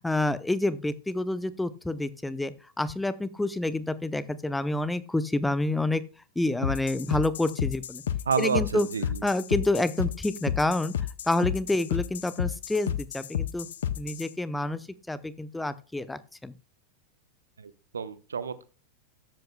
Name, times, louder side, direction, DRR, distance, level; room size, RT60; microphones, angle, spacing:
voice 1, 0.0-2.5 2.8-6.0 6.4-8.0 8.4-8.9 9.2-10.9 11.3-13.7 14.0-14.8 15.1-16.5, left 2 dB, 5° left, 15 dB, 0.6 m, -28 dB
sound 1, 6.6-14.3, left 10 dB, 60° left, 0.7 m, -31 dB
voice 2, 8.3-9.2 17.6-18.7, right 6 dB, 70° right, 14 dB, 0.8 m, -30 dB
13.5 x 10.5 x 2.2 m, 0.36 s
figure-of-eight pair, 90°, 0 cm